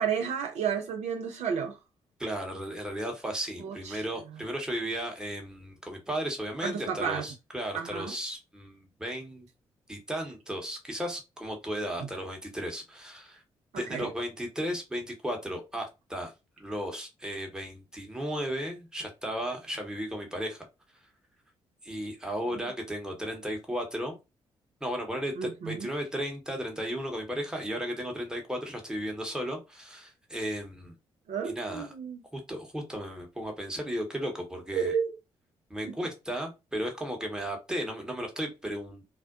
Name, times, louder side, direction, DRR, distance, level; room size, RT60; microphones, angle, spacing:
voice 1, 0.0-1.8 3.6-4.0 6.6-7.2 7.7-8.1 12.0-12.1 13.7-14.1 25.4-25.9 31.3-32.2 34.7-35.1 35.8-36.0, right 7 dB, 55° right, 0.5 m, -32 dB
voice 2, 2.2-9.5 9.9-13.4 13.8-20.7 21.8-24.2 24.8-30.9 31.4-31.9 32.3-34.9 35.7-39.0, equal, 5° right, 1.0 m, -35 dB
2.5 x 2.1 x 2.4 m
figure-of-eight pair, 40°, 14 cm